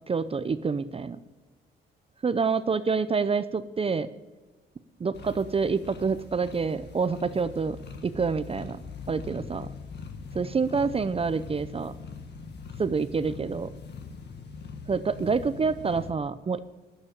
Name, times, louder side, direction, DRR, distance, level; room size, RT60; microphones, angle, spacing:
voice 1, 0.1-1.2 2.2-4.1 5.0-7.8 8.0-8.8 9.1-9.7 10.3-11.9 12.8-13.7 14.9-16.6, right 5 dB, 30° right, 12 dB, 0.6 m, -27 dB
Cat Purring, 5.1-16.1, left 5 dB, 60° left, 1.7 m, -42 dB
12.0 x 9.9 x 7.1 m, 1.2 s
cardioid pair, 90°, 20 cm